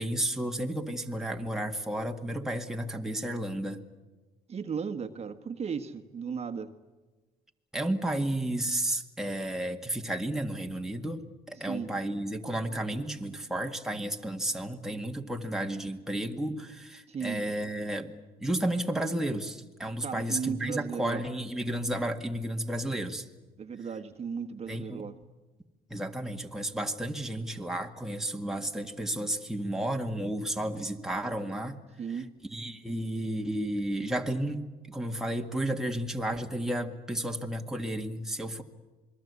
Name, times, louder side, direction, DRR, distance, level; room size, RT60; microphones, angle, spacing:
voice 1, 0.0-3.8 7.7-11.2 11.5-18.2 18.4-23.3 24.7-25.1 25.9-31.8 32.1-32.2 32.5-38.6, right 1 dB, 5° right, 2 dB, 1.9 m, -32 dB
voice 2, 4.5-6.7 11.6-11.9 17.1-17.4 20.0-21.2 23.6-25.1 32.0-32.3, right 6 dB, 40° right, 7 dB, 1.6 m, -35 dB
27.5 x 22.0 x 8.3 m, 1.2 s
cardioid pair, 110°, 17 cm